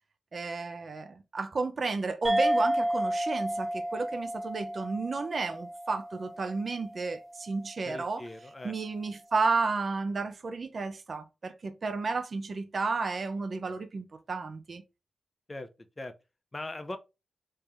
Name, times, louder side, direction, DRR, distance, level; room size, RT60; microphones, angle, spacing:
voice 1, 0.3-8.2 8.6-14.8, right 4 dB, 55° right, 0.6 m, -32 dB
sound 1, 2.2-7.2, equal, 15° right, 0.7 m, -31 dB
voice 2, 7.8-8.7 15.5-15.7 16.0-16.1 16.5-17.0, left 2 dB, 30° left, 0.7 m, -40 dB
3.5 x 2.8 x 3.3 m
cardioid pair, 45°, 0 cm